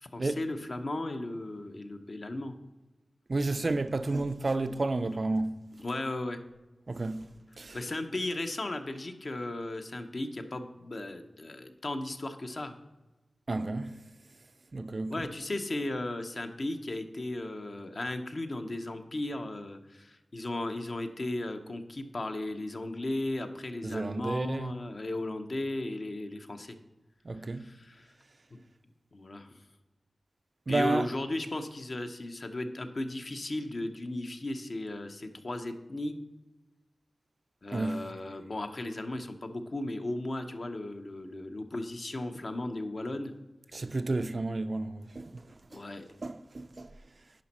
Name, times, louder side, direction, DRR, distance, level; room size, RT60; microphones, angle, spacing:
voice 1, 0.0-2.5 5.8-6.4 7.7-12.7 15.1-26.8 27.3-28.1 28.5-28.6 29.1-29.5 30.7-36.2 37.6-43.4 45.7-46.1, left 2 dB, 45° left, 0.7 m, -36 dB
voice 2, 3.3-5.7 6.9-7.3 7.6-7.8 13.5-14.0 14.7-15.3 23.8-24.7 27.2-27.7 30.7-31.1 37.7-38.1 43.7-45.8 46.2-46.9, right 2 dB, 40° right, 0.4 m, -31 dB
10.5 x 5.2 x 4.2 m
wide cardioid pair, 90°, 0 cm